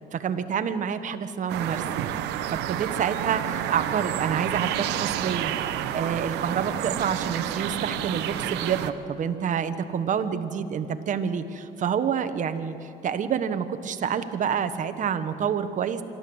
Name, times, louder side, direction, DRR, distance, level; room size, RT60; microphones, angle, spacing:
voice 1, 0.1-1.8 2.5-5.5 5.9-16.0, right 7 dB, 50° right, 9 dB, 1.2 m, -28 dB
sound 1, 1.5-8.9, right 11 dB, 90° right, 0.9 m, -29 dB
26.5 x 12.5 x 7.9 m, 2.8 s
cardioid pair, 110°, 17 cm